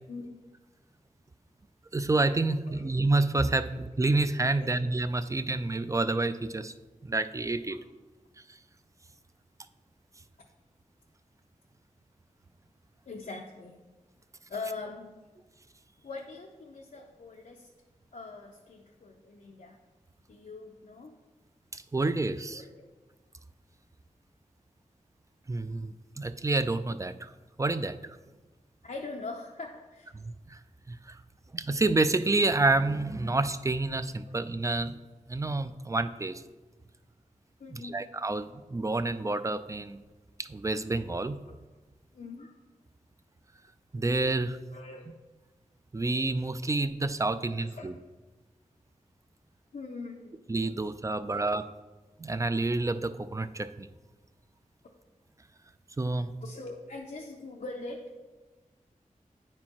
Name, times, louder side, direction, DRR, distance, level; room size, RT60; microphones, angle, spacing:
voice 1, 1.9-6.7 7.0-7.8 8.5-8.6 21.7-22.6 25.5-27.3 27.6-28.2 30.1-30.6 30.9-31.2 31.5-35.0 35.3-36.4 37.7-40.0 40.4-41.4 43.9-44.6 45.9-47.9 50.5-51.6 52.2-53.9 56.0-56.3, right 2 dB, 20° right, 12 dB, 0.3 m, -29 dB
voice 2, 13.1-13.8 14.5-15.1 16.0-17.7 18.1-19.8 20.3-21.1 22.5-22.9 28.8-30.1 34.3-34.4 37.6-38.0 42.1-42.5 44.7-45.1 47.8-47.9 49.7-50.4 56.4-58.2, left 3 dB, 70° left, 0 dB, 0.5 m, -42 dB
9.5 x 4.4 x 2.9 m, 1.2 s
cardioid pair, 45°, 14 cm